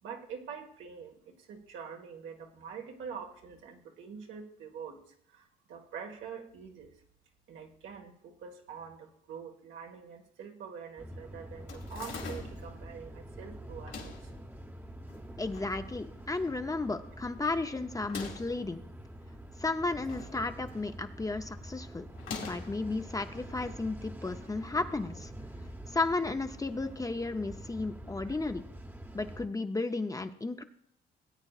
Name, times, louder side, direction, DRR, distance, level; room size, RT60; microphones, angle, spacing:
voice 1, 0.0-7.0 7.5-14.3 28.2-28.4, right 6 dB, 80° right, 2 dB, 1.6 m, -45 dB
sound 1, 11.0-29.5, right 1 dB, 10° right, 0.9 m, -46 dB
sound 2, 11.7-12.7 13.7-14.3 15.1-15.7 16.1-16.2 16.4-16.5 17.9-18.6 19.6-20.4 20.7-21.0 22.1-22.8, left 5 dB, 75° left, 2.3 m, -43 dB
voice 2, 15.4-18.8 19.6-22.0 22.4-25.3 25.9-28.6 29.1-30.6, left 3 dB, 15° left, 8 dB, 0.6 m, -33 dB
18.0 x 8.8 x 2.4 m, 0.68 s
cardioid pair, 90°, 20 cm